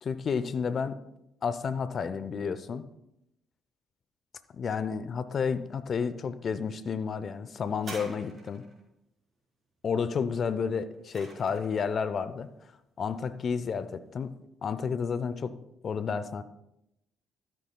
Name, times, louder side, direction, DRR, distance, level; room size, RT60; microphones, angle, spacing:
voice 1, 0.0-1.0 1.4-2.8 4.6-8.6 9.8-12.5 13.0-14.3 14.6-15.5 15.8-16.4, left 6 dB, 50° left, 13 dB, 0.6 m, -31 dB
sound 1, 7.8-8.8 10.5-11.9 12.7-12.8, right 2 dB, 45° right, 4.0 m, -45 dB
13.0 x 9.3 x 2.3 m, 0.85 s
hypercardioid pair, 45°, 0 cm